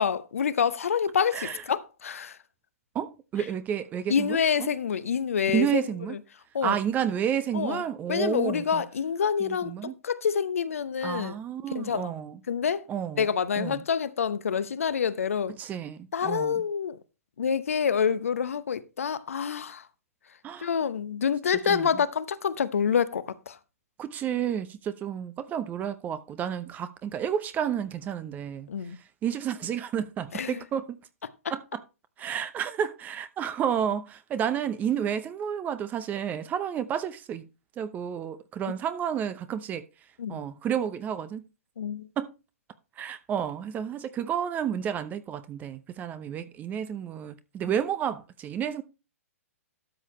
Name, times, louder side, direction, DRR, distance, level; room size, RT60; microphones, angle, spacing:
voice 1, 0.0-2.3 4.1-5.8 6.5-6.8 7.5-7.8 8.1-11.3 11.7-12.1 12.5-12.8 13.2-15.5 16.1-17.0 17.4-19.8 20.6-23.6 28.7-29.0 30.3-30.6 40.2-40.4 41.8-42.1, left 7 dB, 65° left, 0.9 m, -27 dB
voice 2, 1.3-1.6 2.9-4.7 5.5-6.2 6.6-8.8 9.4-9.9 11.0-12.4 12.9-13.3 13.5-13.8 15.6-16.6 20.4-20.7 21.7-22.0 24.0-28.7 29.2-31.0 31.5-31.8 32.2-37.5 37.8-39.8 40.3-41.4 42.2-42.3 43.0-48.8, right 9 dB, 20° right, 0.7 m, -31 dB
12.5 x 7.5 x 3.1 m
figure-of-eight pair, 115°, 8 cm